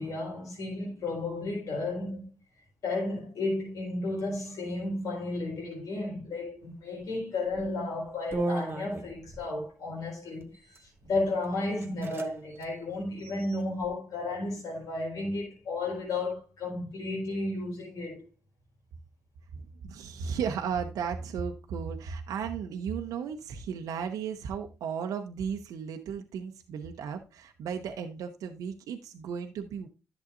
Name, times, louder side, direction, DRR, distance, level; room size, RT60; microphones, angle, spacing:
voice 1, 0.0-2.2 2.6-18.2, left 2 dB, 80° left, 4.6 m, -33 dB
sound 1, 7.5-7.7 8.3-9.4 10.4-10.9 11.4-11.5 11.8-12.3 12.5-12.7 13.2-13.9, right 2 dB, 40° right, 1.5 m, -35 dB
voice 2, 19.5-29.9, right 7 dB, 85° right, 0.8 m, -35 dB
11.0 x 7.2 x 2.6 m
supercardioid pair, 55°, 6 cm